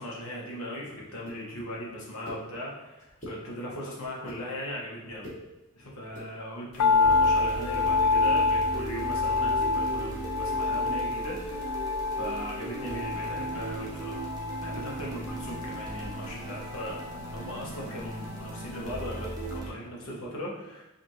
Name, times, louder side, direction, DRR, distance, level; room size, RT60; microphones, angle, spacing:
voice 1, 0.0-5.3 5.7-11.8 12.1-14.2 14.6-20.8, equal, 70° left, -3 dB, 1.1 m, -38 dB
sound 1, 1.3-1.4 2.2-2.4 3.0-3.4 4.0-4.4 5.1-5.4 6.0-6.3, left 1 dB, 35° left, 1.2 m, -42 dB
sound 2, 6.8-19.1 19.3-19.4, left 4 dB, 90° left, 0.3 m, -28 dB
sound 3, 7.0-19.7, right 2 dB, 15° right, 0.8 m, -37 dB
5.0 x 2.5 x 3.1 m, 1.0 s
head